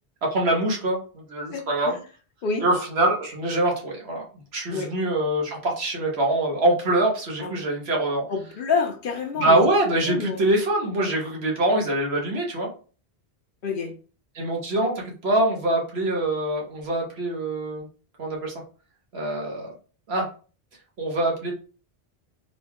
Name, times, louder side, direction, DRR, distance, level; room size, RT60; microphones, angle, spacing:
voice 1, 0.2-2.0 2.6-4.3 4.5-8.2 9.4-12.7 14.3-17.9 18.2-18.5 19.1-19.7 20.1-20.3 21.0-21.5, right 1 dB, 80° right, 1.4 m, -24 dB
voice 2, 1.5-2.0 2.4-2.6 4.7-4.9 7.4-7.6 8.3-9.6 10.1-10.5 13.6-13.9, left 5 dB, 60° left, 0.8 m, -28 dB
3.8 x 2.3 x 3.5 m
omnidirectional pair, 1.1 m